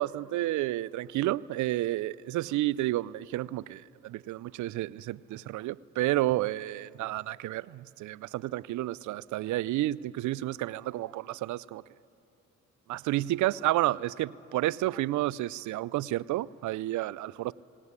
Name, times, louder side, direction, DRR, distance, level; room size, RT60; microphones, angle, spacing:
voice 1, 0.0-11.8 12.9-17.5, right 16 dB, 75° right, 0.5 m, -31 dB
19.0 x 18.0 x 9.6 m
cardioid pair, 90°, 30 cm